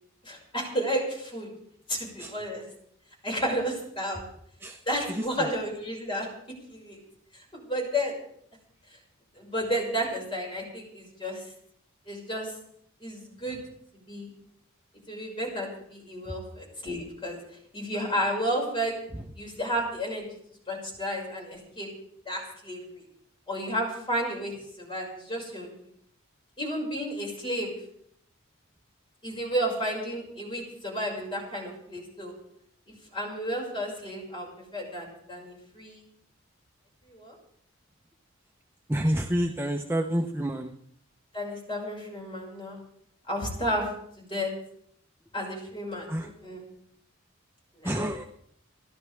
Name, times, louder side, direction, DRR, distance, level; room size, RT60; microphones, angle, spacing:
voice 1, 0.2-1.5 1.9-2.6 3.2-4.2 4.9-6.3 6.7-7.0 7.3-8.2 9.3-11.5 12.1-12.5 13.0-13.6 13.9-14.3 15.1-17.4 17.7-19.0 19.3-20.3 20.7-21.9 22.3-23.0 23.5-25.9 26.6-27.7 29.2-32.3 33.1-36.0 37.1-37.4 41.3-42.8 43.3-43.9 44.2-44.5 45.3-46.6 47.7-48.0, equal, 25° left, -2 dB, 5.9 m, -32 dB
voice 2, 38.9-40.7 46.1-46.3 47.8-48.2, equal, 10° right, 2 dB, 0.8 m, -28 dB
29.5 x 12.0 x 3.5 m, 0.67 s
head